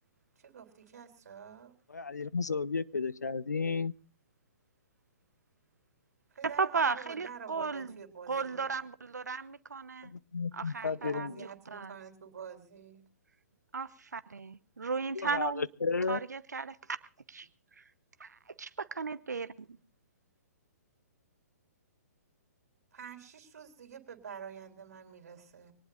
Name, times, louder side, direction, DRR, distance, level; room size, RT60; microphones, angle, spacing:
voice 1, 0.4-1.7 6.3-8.7 10.8-13.0 22.9-25.7, right 7 dB, 70° right, 3.5 m, -47 dB
voice 2, 1.9-3.9 10.1-11.5 15.1-16.2, left 4 dB, 90° left, 0.8 m, -33 dB
voice 3, 6.4-7.9 8.3-10.1 10.5-11.3 11.7-11.9 13.7-15.7 16.1-16.8 17.3-17.5 18.2-19.5, right 5 dB, 85° right, 0.9 m, -35 dB
24.5 x 19.0 x 2.5 m
hypercardioid pair, 130°, 9 cm